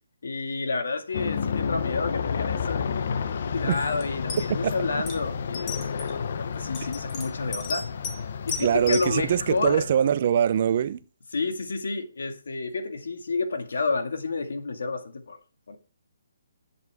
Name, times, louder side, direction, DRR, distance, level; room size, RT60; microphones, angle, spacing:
voice 1, 0.2-7.9 8.5-9.8 11.3-15.4 15.7-15.8, left 3 dB, 75° left, 2.1 m, -30 dB
Aircraft, 1.1-10.2, left 6 dB, 50° left, 0.8 m, -31 dB
sound 1, 4.0-4.1 4.3-4.7 5.1-5.2 5.5-6.1 6.7-8.2 8.5-9.1, left 4 dB, 20° left, 2.2 m, -34 dB
voice 2, 8.6-11.0, right 9 dB, 40° right, 0.6 m, -23 dB
11.0 x 8.1 x 3.6 m
hypercardioid pair, 165°, 0 cm